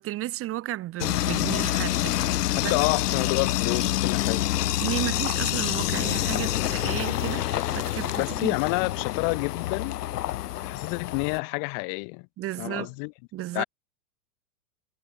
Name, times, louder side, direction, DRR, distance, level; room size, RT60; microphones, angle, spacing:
voice 1, 0.0-2.8 4.8-8.6 12.4-12.9 13.3-13.6, right 15 dB, 30° right, 4.4 m, -33 dB
sound 1, 1.0-11.4, left 14 dB, 80° left, 2.9 m, -27 dB
voice 2, 2.6-4.4 8.1-10.0 10.6-12.3 12.6-13.1 13.5-13.6, left 40 dB or more, 40° left, 5.0 m, -29 dB
supercardioid pair, 160°, 47 cm